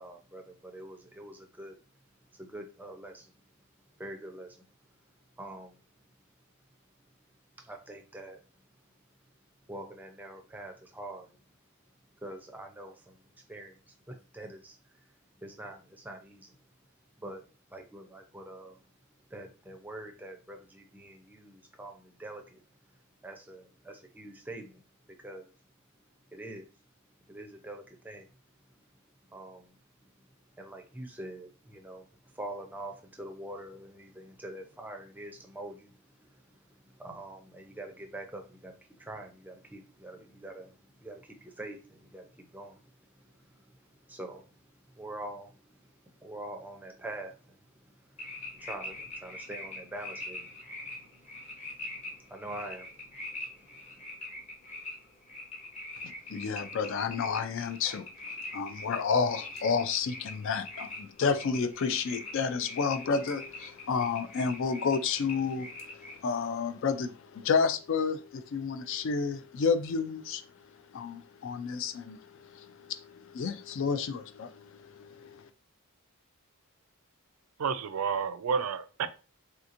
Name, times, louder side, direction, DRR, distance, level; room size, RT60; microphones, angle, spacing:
voice 1, 0.0-1.8 2.3-3.3 4.0-4.6 5.4-6.0 7.6-8.4 9.7-11.4 12.2-16.6 17.2-18.8 19.3-25.5 26.3-26.8 27.3-28.4 28.7-29.0 29.3-30.1 30.5-54.0, right 1 dB, 10° right, 3 dB, 0.5 m, -45 dB
sound 1, 48.2-66.2, left 2 dB, 30° left, 0.7 m, -43 dB
voice 2, 56.3-58.0 58.5-70.4 70.9-75.5, left 5 dB, 60° left, 11 dB, 0.3 m, -31 dB
voice 3, 77.6-79.1, right 6 dB, 80° right, 11 dB, 0.4 m, -30 dB
3.4 x 2.8 x 2.5 m, 0.33 s
head